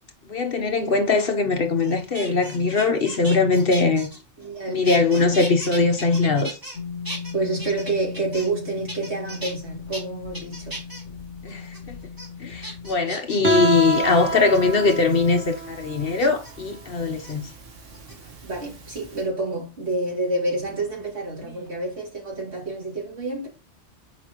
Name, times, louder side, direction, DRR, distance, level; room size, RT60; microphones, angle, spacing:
voice 1, 0.2-4.1 4.7-6.6 11.4-11.6 12.4-17.4, left 4 dB, 55° left, 1.1 m, -21 dB
sound 1, 1.8-4.6 4.8-6.8 7.0-8.6 8.9-9.5 9.9-10.0 10.3-11.0 11.5-11.8 12.2-12.3 12.6-13.7 14.5-14.9 16.2-16.5 17.1-17.3 17.9-18.5 19.9-21.1 21.4-21.8, right 1 dB, 15° right, 1.8 m, -37 dB
voice 2, 4.4-4.9 7.3-10.8 18.4-23.5, right 2 dB, 60° right, 2.9 m, -28 dB
sound 2, 6.7-12.9, left 6 dB, 80° left, 1.2 m, -37 dB
Guitar, 13.4-19.1, right 3 dB, 80° right, 1.6 m, -28 dB
7.8 x 5.0 x 3.0 m
omnidirectional pair, 1.2 m